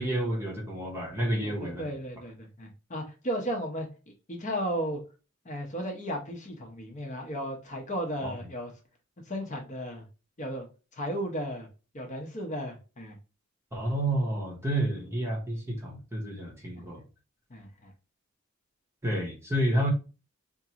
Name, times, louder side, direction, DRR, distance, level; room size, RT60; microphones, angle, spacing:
voice 1, 0.0-1.8 8.2-8.3 13.7-17.0 19.0-19.9, right 1 dB, 15° right, 0.9 m, -30 dB
voice 2, 1.2-3.9 4.3-5.0 5.4-8.7 9.3-10.0 10.4-10.7 10.9-11.7 11.9-13.2 16.8-16.9 17.5-17.9, equal, 35° left, 0.8 m, -35 dB
4.4 x 2.5 x 2.8 m
head